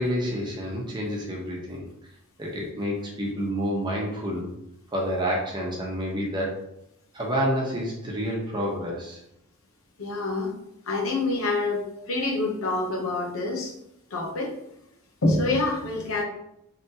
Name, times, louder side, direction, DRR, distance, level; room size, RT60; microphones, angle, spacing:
voice 1, 0.0-1.9 2.4-4.5 4.9-6.7 7.1-9.2, equal, 20° right, -2 dB, 0.9 m, -28 dB
voice 2, 10.0-10.5 10.9-13.7 14.1-14.6 15.2-16.2, left 2 dB, 75° left, 0 dB, 0.8 m, -26 dB
3.9 x 3.2 x 2.8 m, 0.81 s
head